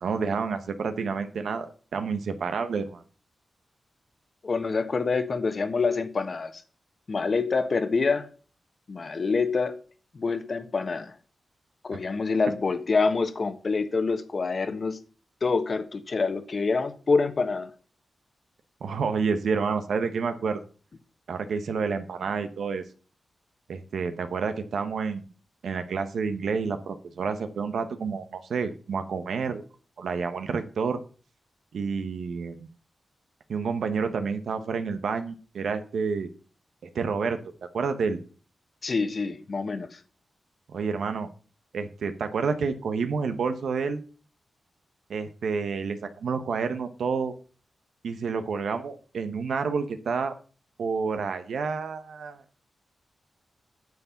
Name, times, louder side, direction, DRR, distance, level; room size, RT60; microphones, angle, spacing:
voice 1, 0.0-1.7 1.9-3.0 18.8-20.6 21.3-22.8 23.7-25.2 25.6-29.6 30.0-31.0 31.7-32.7 33.5-36.3 36.9-37.4 37.7-38.2 40.7-41.3 41.7-44.0 45.1-47.3 48.0-50.3 50.8-52.4, right 5 dB, 85° right, 1.0 m, -29 dB
voice 2, 4.4-6.6 7.1-8.3 8.9-9.8 10.1-11.1 11.8-15.0 15.4-17.7 38.8-40.0, left 4 dB, 50° left, 1.4 m, -26 dB
9.6 x 7.1 x 7.0 m
cardioid pair, 85°, 0 cm